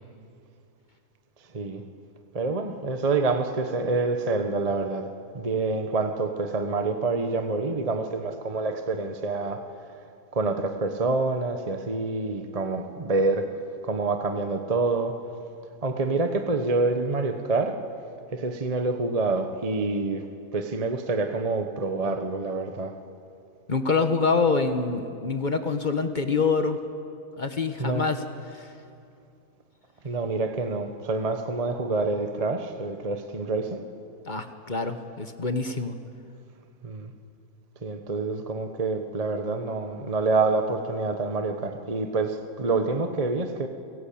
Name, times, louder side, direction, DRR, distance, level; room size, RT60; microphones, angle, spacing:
voice 1, 2.3-5.1 5.3-9.6 10.3-13.5 13.8-15.1 15.8-17.8 18.3-20.2 20.5-22.9 27.8-28.1 30.0-33.8 36.8-37.1 37.8-43.7, right 3 dB, 25° right, 6 dB, 1.2 m, -27 dB
voice 2, 23.7-26.8 27.4-28.7 34.3-35.9, left 4 dB, 35° left, 8 dB, 1.2 m, -26 dB
30.0 x 17.5 x 8.7 m, 2.5 s
omnidirectional pair, 1.7 m